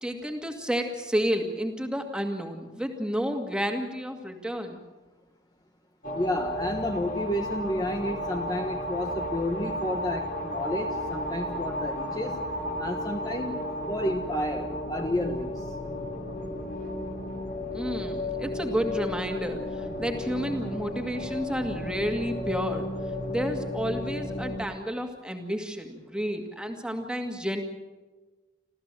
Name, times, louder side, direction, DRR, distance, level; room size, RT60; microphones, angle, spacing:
voice 1, 0.0-4.8 17.7-22.9 23.3-27.6, equal, 5° right, 4 dB, 2.2 m, -31 dB
sound 1, 6.0-24.6, left 1 dB, 50° left, 3.5 m, -33 dB
voice 2, 6.1-12.4 12.8-15.6, left 1 dB, 20° left, 4 dB, 1.2 m, -31 dB
27.5 x 14.5 x 7.7 m, 1.2 s
head